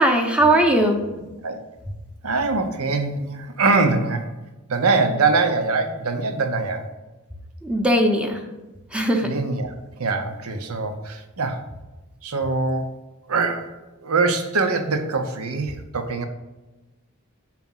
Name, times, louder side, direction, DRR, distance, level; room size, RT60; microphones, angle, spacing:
voice 1, 0.0-1.0 7.6-8.4 8.9-9.3, right 1 dB, 5° right, 2 dB, 0.8 m, -19 dB
voice 2, 1.1-1.6 2.2-4.3 4.7-6.9 9.2-9.7 10.0-11.6 12.2-12.9 13.3-16.3, right 3 dB, 70° right, 7 dB, 0.8 m, -23 dB
6.0 x 4.9 x 5.6 m, 1.1 s
head